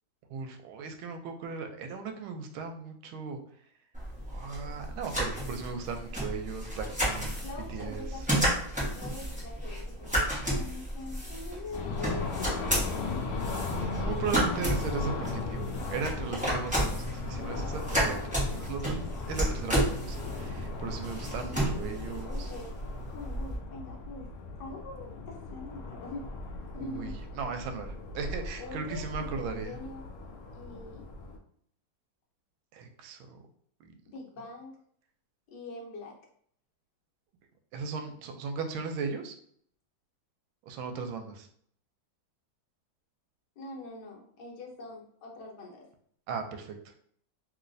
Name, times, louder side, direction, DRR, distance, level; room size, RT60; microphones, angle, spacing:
voice 1, 0.3-3.4 4.3-7.4 7.7-8.2 13.7-18.2 18.5-19.0 19.3-22.5 26.7-29.8 32.7-33.4 33.8-33.9 37.7-39.3 40.6-41.5 46.3-47.0, right 5 dB, 90° right, 6 dB, 1.4 m, -37 dB
sound 1, 3.9-23.5, equal, 5° right, 0.6 m, -32 dB
voice 2, 6.8-10.2 10.5-13.3 17.8-18.2 22.0-22.7 23.1-24.3 24.6-26.2 26.7-27.2 28.6-30.1 30.5-31.0 34.1-34.8 35.5-36.2 43.6-45.9, left 2 dB, 65° left, -1 dB, 1.3 m, -44 dB
sound 2, 11.7-31.4, left 3 dB, 85° left, 0.8 m, -38 dB
3.0 x 3.0 x 2.5 m, 0.64 s
omnidirectional pair, 2.2 m